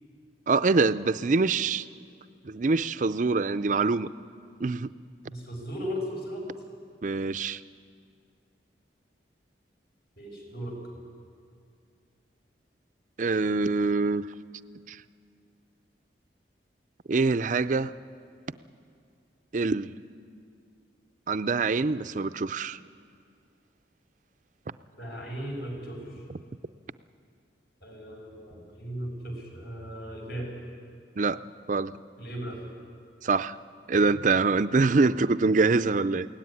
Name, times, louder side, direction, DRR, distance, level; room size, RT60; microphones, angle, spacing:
voice 1, 0.5-1.8 2.5-4.1 4.6-4.9 7.0-7.6 13.2-14.2 14.9-15.0 17.1-17.9 19.5-19.9 21.3-22.8 31.2-31.4 31.7-32.0 33.2-33.6 33.9-36.3, right 3 dB, 45° right, 14 dB, 0.5 m, -24 dB
voice 2, 5.3-6.4 10.2-10.8 24.9-26.1 27.8-30.5 32.2-32.6, equal, 60° left, 0 dB, 5.6 m, -37 dB
21.5 x 17.5 x 9.7 m, 2.3 s
head